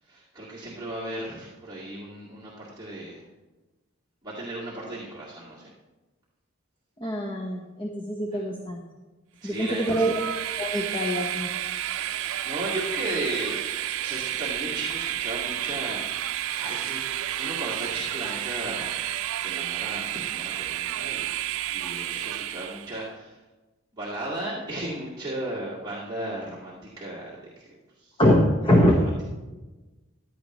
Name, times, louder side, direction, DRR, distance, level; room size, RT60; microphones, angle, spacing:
voice 1, 0.0-3.2 4.2-5.7 8.3-8.4 9.4-10.1 12.4-13.7 14.0-17.0 17.4-21.4 21.7-23.4 23.9-27.7 28.0-28.2 28.9-29.0, right 1 dB, 15° right, -9 dB, 2.0 m, -35 dB
voice 2, 7.0-8.8 9.4-10.2 10.6-11.5 28.2-28.3 28.6-28.9, equal, 25° left, 0 dB, 1.0 m, -23 dB
Train, 9.5-23.0, right 12 dB, 80° right, 0.5 m, -31 dB
15.0 x 10.5 x 3.1 m, 1.2 s
head